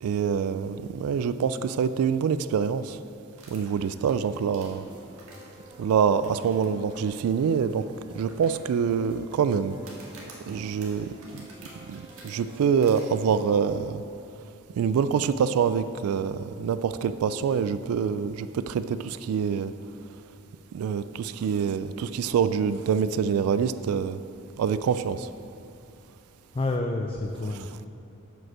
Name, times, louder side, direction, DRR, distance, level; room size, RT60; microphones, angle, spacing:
voice 1, 0.0-3.0 3.5-4.8 5.8-7.9 8.1-9.8 10.5-11.4 11.9-14.0 14.8-19.7 20.7-24.2 24.6-25.3, right 6 dB, 90° right, 13 dB, 0.3 m, -25 dB
sound 1, 3.3-5.7 6.2-6.6 6.9-7.0 7.5-7.6 8.3-9.1 9.8-12.3 12.8-13.0, right 3 dB, 75° right, 1.7 m, -49 dB
sound 2, 4.6-13.8, right 1 dB, 25° right, 0.9 m, -50 dB
voice 2, 26.5-27.9, left 2 dB, 25° left, 3 dB, 0.4 m, -29 dB
7.7 x 5.3 x 6.1 m, 2.6 s
head